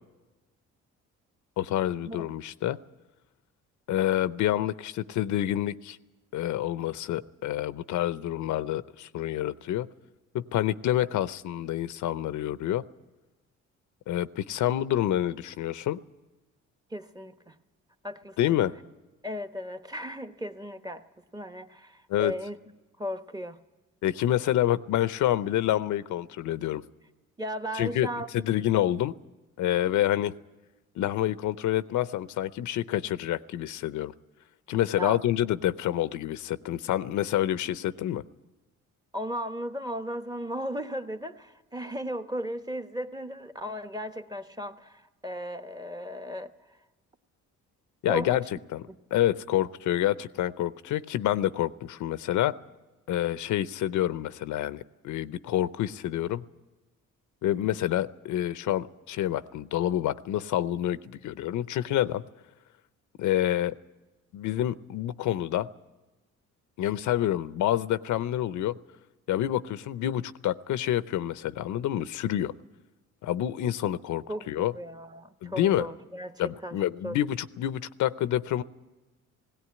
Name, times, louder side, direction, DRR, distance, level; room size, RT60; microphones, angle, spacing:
voice 1, 1.6-2.8 3.9-6.0 6.3-9.9 10.3-12.8 14.1-16.0 18.4-18.7 22.1-22.3 24.0-26.8 27.7-28.1 28.3-29.1 29.6-30.3 31.0-34.1 34.7-38.2 48.0-48.4 48.7-48.8 49.1-52.5 53.1-56.4 57.4-62.2 63.2-63.7 64.3-65.7 66.8-68.8 69.3-72.5 73.2-74.7 75.4-75.9 76.4-78.6, left 12 dB, 75° left, 15 dB, 0.6 m, -28 dB
voice 2, 16.9-17.5 18.0-18.6 19.2-21.0 21.3-22.6 23.0-23.6 27.4-28.3 35.0-35.2 39.1-46.5 48.1-48.4 48.9-49.0 74.3-76.8 77.0-77.2, equal, 15° right, 9 dB, 1.0 m, -36 dB
17.5 x 17.0 x 9.5 m, 1.1 s
cardioid pair, 90°, 30 cm